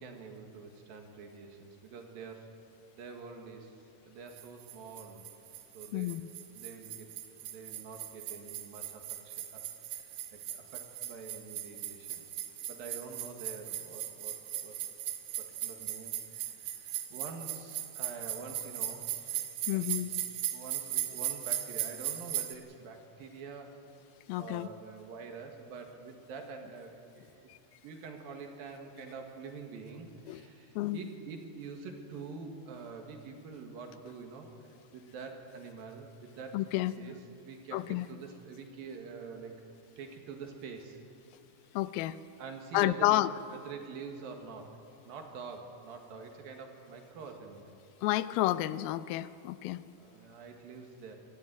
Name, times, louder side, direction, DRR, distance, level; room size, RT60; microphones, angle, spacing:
voice 1, 0.0-2.5 2.9-5.2 5.7-6.3 6.5-7.1 7.4-9.6 9.9-12.4 12.7-14.8 15.4-19.4 19.7-20.2 20.5-23.9 24.4-27.5 27.8-34.5 34.9-37.2 37.4-39.6 40.0-41.0 42.4-43.2 43.5-44.8 45.0-47.8 50.0-51.2, right 5 dB, 70° right, 3 dB, 3.5 m, -46 dB
sound 1, 4.4-22.5, right 13 dB, 85° right, 3.1 m, -38 dB
voice 2, 19.7-20.1 24.3-24.7 27.5-27.6 30.3-30.4 30.8-31.0 36.5-36.9 37.7-38.1 41.7-42.2 42.7-43.3 48.0-49.8, left 16 dB, 80° left, 15 dB, 2.4 m, -30 dB
25.0 x 13.0 x 9.2 m, 2.6 s
omnidirectional pair, 4.4 m